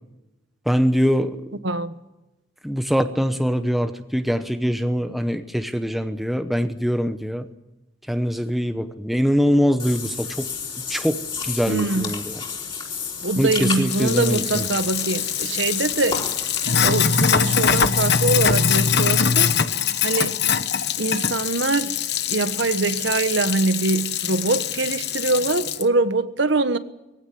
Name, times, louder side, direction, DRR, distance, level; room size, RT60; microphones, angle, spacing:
voice 1, 0.7-1.4 2.6-7.5 8.1-10.5 10.9-12.4 13.4-14.6, equal, ahead, 1.0 m, -23 dB
voice 2, 1.6-1.9 11.6-12.1 13.2-16.3 16.8-19.5 20.0-20.4 21.0-22.0 22.3-26.8, right 3 dB, 65° right, 1.3 m, -23 dB
Water / Bathtub (filling or washing), 9.8-19.0, left 6 dB, 25° left, 4.0 m, -31 dB
Sink (filling or washing), 13.9-25.8, left 7 dB, 55° left, 1.1 m, -23 dB
22.5 x 16.0 x 9.5 m
head